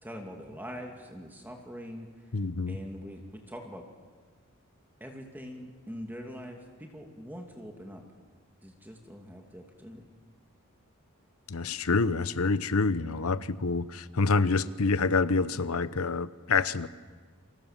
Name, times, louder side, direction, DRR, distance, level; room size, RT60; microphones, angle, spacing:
voice 1, 0.0-2.3 2.7-3.8 5.0-8.0 8.6-10.0, equal, 10° right, 2 dB, 2.5 m, -43 dB
voice 2, 2.3-2.8 11.5-16.9, left 4 dB, 80° left, 15 dB, 0.9 m, -27 dB
28.0 x 26.0 x 7.4 m, 1.5 s
head